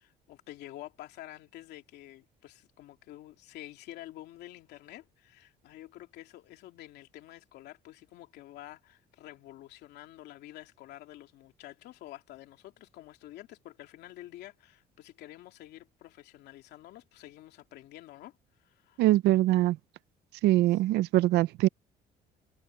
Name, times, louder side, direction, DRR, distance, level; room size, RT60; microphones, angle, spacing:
voice 1, 0.0-19.0 20.7-20.8, left 15 dB, 80° left, 2.8 m, -49 dB
voice 2, 19.0-19.8 20.4-21.7, right 16 dB, 80° right, 0.6 m, -23 dB
cardioid pair, 110°, 17 cm